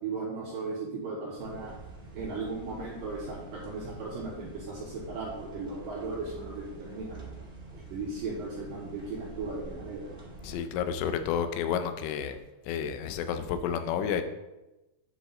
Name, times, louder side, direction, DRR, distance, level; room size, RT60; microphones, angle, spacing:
voice 1, 0.0-1.7 2.1-7.3 7.9-10.0, right 3 dB, 70° right, -4 dB, 2.3 m, -36 dB
sound 1, 1.4-10.6, right 2 dB, 25° right, 1.0 m, -46 dB
voice 2, 10.4-12.4 12.7-14.2, left 8 dB, 85° left, 8 dB, 3.0 m, -30 dB
9.6 x 5.1 x 3.8 m, 1.0 s
omnidirectional pair, 5.1 m